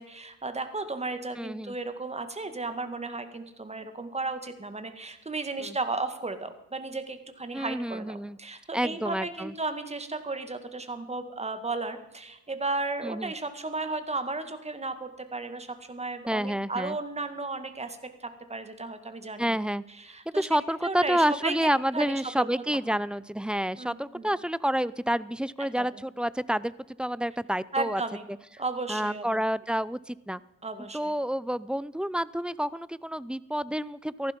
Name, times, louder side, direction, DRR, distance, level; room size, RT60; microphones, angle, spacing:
voice 1, 0.0-19.6 20.0-20.5 20.8-22.5 22.9-23.0 23.8-24.3 25.6-25.9 27.7-28.2 28.6-29.4 30.6-31.1, right 3 dB, 20° right, 9 dB, 2.1 m, -34 dB
voice 2, 1.4-1.7 5.6-5.8 7.5-8.4 8.7-9.5 13.0-13.3 16.3-17.0 19.4-19.8 20.3-26.7 27.0-28.0 28.9-30.4 30.9-34.3, equal, 5° right, 19 dB, 0.5 m, -29 dB
18.0 x 14.5 x 5.3 m, 0.94 s
cardioid pair, 90°, 30 cm